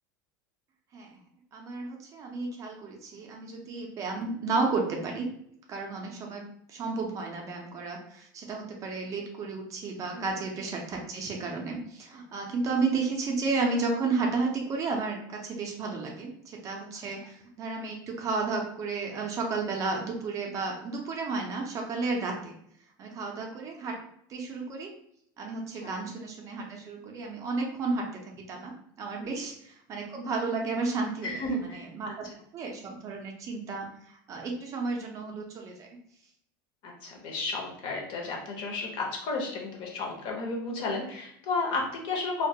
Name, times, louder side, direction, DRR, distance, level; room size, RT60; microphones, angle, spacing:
voice 1, 1.5-5.3 5.7-22.5 23.0-24.0 24.3-24.9 25.4-28.0 28.3-32.2 32.5-35.9, right 3 dB, 30° right, 1 dB, 0.4 m, -32 dB
voice 2, 31.2-32.1 36.8-42.5, left 3 dB, 50° left, 0 dB, 0.7 m, -33 dB
2.2 x 2.1 x 2.6 m, 0.69 s
supercardioid pair, 150°, 11 cm